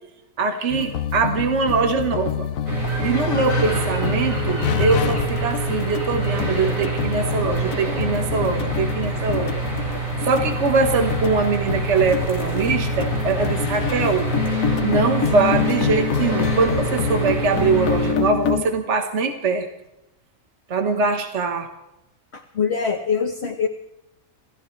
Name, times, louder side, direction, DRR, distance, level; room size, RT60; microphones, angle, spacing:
voice 1, 0.4-2.5 3.0-9.6 10.2-14.3 14.8-19.7 20.7-21.7, right 4 dB, 60° right, 6 dB, 1.5 m, -22 dB
sound 1, 0.7-18.6, left 8 dB, 85° left, 1.2 m, -26 dB
sound 2, 2.7-18.1, right 4 dB, 75° right, 5.5 m, -27 dB
voice 2, 22.3-23.7, left 6 dB, 55° left, 4 dB, 1.3 m, -23 dB
28.5 x 16.0 x 3.2 m, 0.90 s
omnidirectional pair, 1.4 m